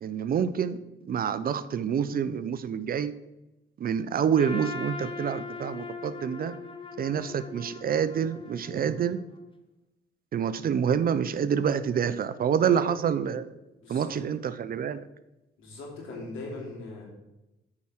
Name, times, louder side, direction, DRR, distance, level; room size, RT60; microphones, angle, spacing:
voice 1, 0.0-0.8 1.1-3.1 3.8-6.6 7.0-9.2 10.3-13.5 13.9-15.0, right 8 dB, 50° right, 14 dB, 0.5 m, -27 dB
Trumpet, 4.4-9.4, left 4 dB, 25° left, 1.1 m, -40 dB
voice 2, 12.6-12.9 13.8-14.2 15.6-17.1, left 2 dB, 85° left, -3 dB, 3.1 m, -40 dB
8.5 x 4.9 x 5.8 m, 0.98 s
cardioid pair, 90°, 20 cm